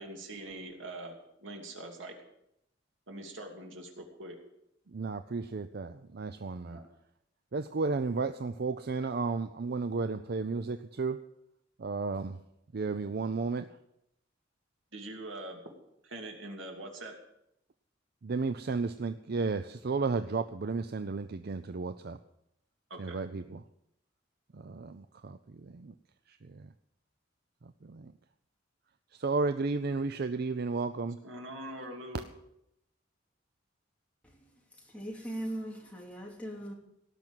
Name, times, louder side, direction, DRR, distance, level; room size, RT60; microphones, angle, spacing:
voice 1, 0.0-2.2 3.1-4.4 6.6-6.9 14.9-15.6 16.0-17.1 22.9-23.2 31.2-32.3, right 1 dB, 75° right, 2.7 m, -43 dB
voice 2, 4.9-6.8 7.5-11.2 11.8-12.4 12.7-13.7 18.2-22.2 23.0-23.6 24.5-25.9 26.3-26.7 27.6-28.1 29.1-31.2, right 4 dB, 55° right, 0.5 m, -33 dB
voice 3, 34.8-36.7, right 1 dB, 5° left, 3.0 m, -40 dB
18.0 x 6.2 x 9.0 m
head